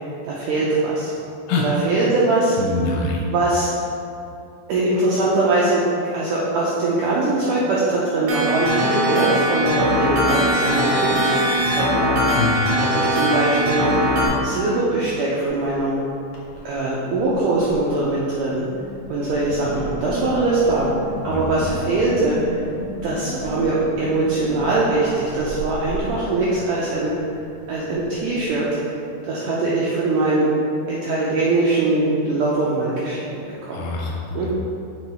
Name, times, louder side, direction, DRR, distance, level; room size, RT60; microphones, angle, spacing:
voice 1, 0.2-1.1 1.6-2.6 3.3-3.7 4.7-5.9 6.1-11.4 11.7-12.2 12.7-13.9 14.4-15.9 16.7-18.6 19.1-20.9 21.2-22.6 23.0-27.1 27.7-28.8 29.2-30.5 30.9-33.3 33.6-33.9 34.4-34.5, right 2 dB, 90° right, -6 dB, 1.8 m, -21 dB
voice 2, 2.6-3.3 12.4-12.6 21.3-21.4 33.7-34.5, left 3 dB, 80° left, -1 dB, 2.3 m, -25 dB
sound 1, 8.3-14.3, equal, 70° right, 1.8 m, -20 dB
Wind, 15.6-15.9 16.2-16.7 17.2-28.6, right 1 dB, 65° left, 1.8 m, -34 dB
5.7 x 4.5 x 4.3 m, 2.6 s
omnidirectional pair, 4.5 m